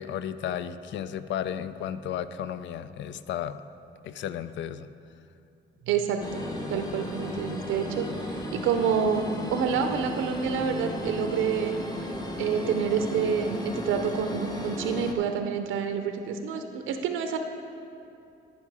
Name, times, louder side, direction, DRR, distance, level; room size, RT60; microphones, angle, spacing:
voice 1, 0.0-3.6 4.0-4.9, left 9 dB, 70° left, 13 dB, 0.4 m, -33 dB
voice 2, 5.9-6.4 6.7-9.2 9.5-11.7 12.4-17.4, right 7 dB, 90° right, 7 dB, 0.6 m, -28 dB
sound 1, 6.2-15.1, left 1 dB, 20° left, 1.0 m, -35 dB
13.5 x 5.6 x 4.8 m, 2.6 s
cardioid pair, 90°, 20 cm